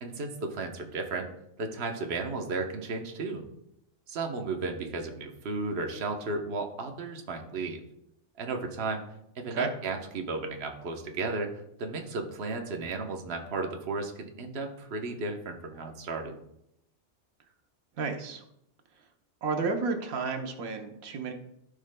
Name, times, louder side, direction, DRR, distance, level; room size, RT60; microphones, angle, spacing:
voice 1, 0.0-1.3 1.6-3.5 4.1-7.8 8.4-9.0 9.3-16.3, right 3 dB, 50° right, 3 dB, 1.1 m, -34 dB
voice 2, 18.0-18.4 19.4-21.3, right 4 dB, 90° right, 4 dB, 1.3 m, -31 dB
15.0 x 5.0 x 2.2 m, 0.78 s
omnidirectional pair, 1.4 m